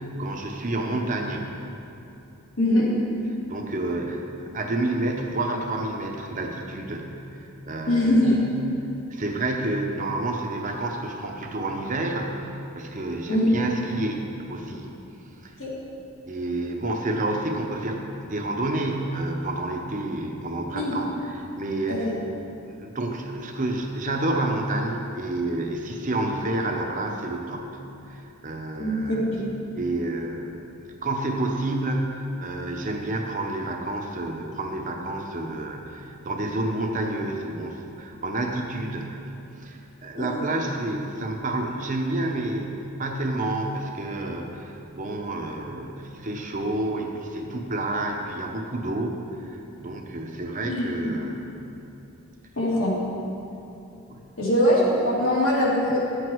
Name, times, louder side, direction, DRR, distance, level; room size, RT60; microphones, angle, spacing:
voice 1, 0.0-1.5 3.5-4.2 4.5-8.4 9.1-14.2 14.5-14.9 15.4-15.5 16.3-22.1 22.7-27.8 28.1-29.4 29.7-30.7 31.0-32.1 32.4-39.2 39.6-51.5 54.1-54.2, right 2 dB, 35° right, 2 dB, 0.8 m, -29 dB
voice 2, 2.6-2.9 7.9-8.4 13.3-13.5 15.6-15.7 20.7-20.9 21.9-22.0 28.8-29.4 40.1-40.5 50.7-51.1 52.6-52.9 54.4-56.0, left 1 dB, 70° left, -6 dB, 2.6 m, -22 dB
11.5 x 8.0 x 4.6 m, 2.8 s
head